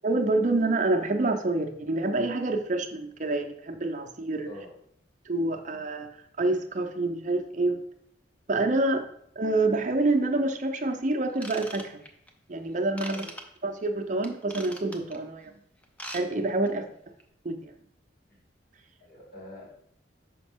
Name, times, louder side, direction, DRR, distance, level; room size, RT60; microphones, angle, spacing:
voice 1, 0.0-4.5 5.3-7.8 8.5-9.1 9.4-12.0 12.5-13.3 13.6-15.5 16.1-16.8 17.4-17.7, right 2 dB, 40° right, 6 dB, 0.5 m, -27 dB
voice 2, 4.4-4.8 13.1-13.3 16.7-16.8 18.3-18.4 19.0-19.7, equal, 50° left, -3 dB, 2.1 m, -45 dB
Ratchet pawl / Tools, 11.3-12.3 13.0-13.4 14.2-15.2 15.8-16.2 16.5-16.7 17.2-17.3, equal, 5° left, 0.5 m, -40 dB
5.9 x 5.0 x 3.5 m, 0.71 s
head